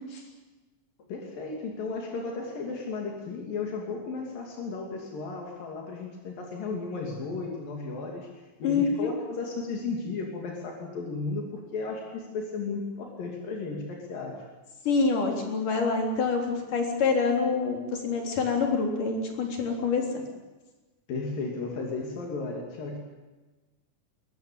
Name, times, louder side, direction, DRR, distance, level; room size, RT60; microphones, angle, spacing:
voice 1, 1.1-8.3 8.6-14.4 21.1-23.0, left 4 dB, 85° left, 0 dB, 4.5 m, -34 dB
voice 2, 8.6-9.2 14.9-20.1, left 4 dB, 70° left, 1 dB, 5.3 m, -26 dB
22.0 x 21.0 x 8.7 m, 1.2 s
omnidirectional pair, 3.9 m